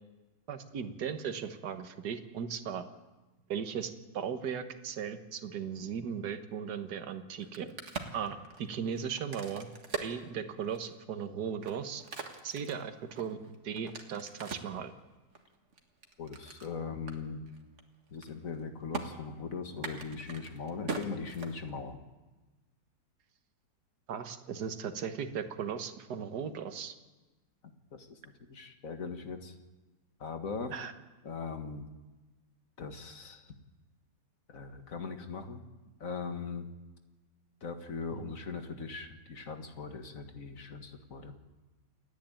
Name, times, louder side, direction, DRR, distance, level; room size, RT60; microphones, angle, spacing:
voice 1, 0.5-2.8 3.5-7.7 8.1-9.7 10.0-12.0 12.4-14.9 24.1-26.9 30.7-30.9 38.1-38.3, right 7 dB, 70° right, 8 dB, 1.8 m, -37 dB
Crack, 7.3-11.0 11.5-14.8 15.3-16.7 17.1-17.2 17.5-17.8 18.1-18.6 18.9-19.0 19.7-21.9, right 4 dB, 45° right, 2.1 m, -41 dB
voice 2, 16.2-17.4 18.1-22.0 27.9-29.5 30.2-30.7 31.2-31.9 32.8-33.5 34.5-35.6 36.0-36.7 37.6-41.3, left 5 dB, 50° left, 6 dB, 2.0 m, -40 dB
28.5 x 10.5 x 8.9 m, 1.2 s
omnidirectional pair, 1.9 m